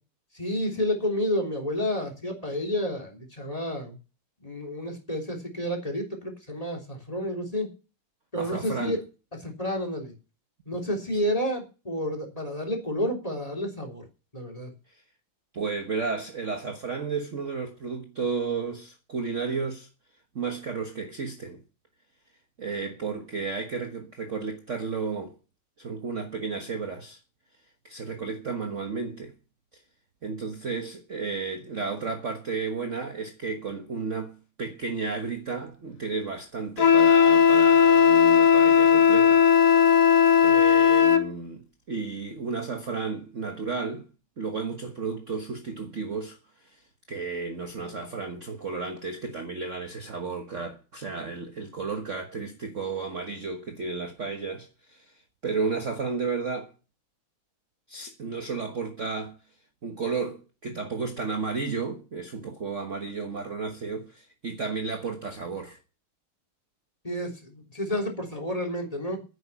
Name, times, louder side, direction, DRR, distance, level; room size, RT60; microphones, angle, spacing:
voice 1, 0.3-4.0 4.4-7.7 8.3-9.0 9.4-10.1 10.7-14.1 14.3-14.7 67.0-69.2, equal, 15° left, 3.5 m, -30 dB
voice 2, 8.4-9.0 14.9-15.0 15.5-19.9 20.3-21.6 22.6-25.4 25.8-27.2 27.8-29.3 30.2-39.9 40.4-44.1 44.4-56.7 57.9-59.4 59.8-65.8, right 4 dB, 40° right, 1.4 m, -33 dB
Wind instrument woodwind instrument, 36.8-41.3, left 7 dB, 45° left, 1.3 m, -17 dB
10.5 x 9.1 x 8.3 m
omnidirectional pair, 2.3 m